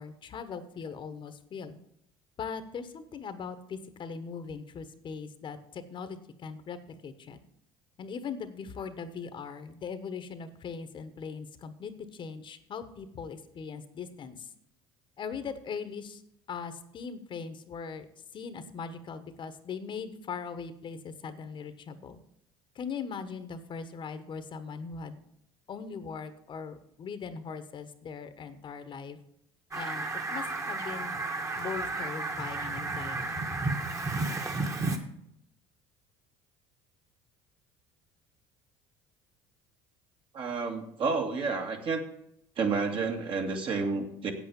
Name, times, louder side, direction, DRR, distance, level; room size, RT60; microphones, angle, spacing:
voice 1, 0.0-1.8 2.4-7.4 8.0-14.5 15.2-16.2 16.5-18.1 18.3-22.2 22.7-25.2 25.7-29.2 29.7-30.0 30.3-31.2 31.6-33.4, left 6 dB, 45° left, 11 dB, 1.2 m, -40 dB
Fowl, 29.7-35.0, right 3 dB, 25° right, 1.7 m, -32 dB
voice 2, 40.3-42.0 42.6-44.3, right 4 dB, 45° right, 3 dB, 2.2 m, -30 dB
8.4 x 8.3 x 7.0 m, 0.75 s
supercardioid pair, 90°, 12 cm